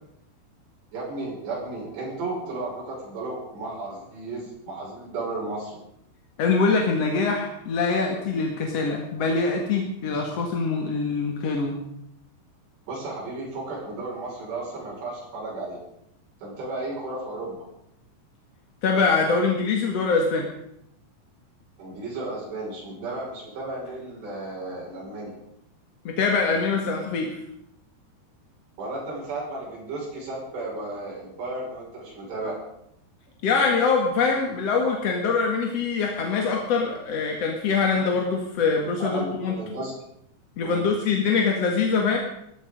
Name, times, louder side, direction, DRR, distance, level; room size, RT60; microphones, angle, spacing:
voice 1, 0.9-5.8 12.9-15.8 16.4-17.6 21.8-25.3 28.8-32.6 39.0-39.9 40.6-40.8, right 2 dB, 70° right, -4 dB, 8.3 m, -34 dB
voice 2, 6.4-11.8 18.8-20.5 26.0-27.4 33.4-39.6 40.6-42.2, left 4 dB, 50° left, 1 dB, 2.1 m, -24 dB
18.0 x 14.0 x 5.2 m, 0.76 s
omnidirectional pair, 5.1 m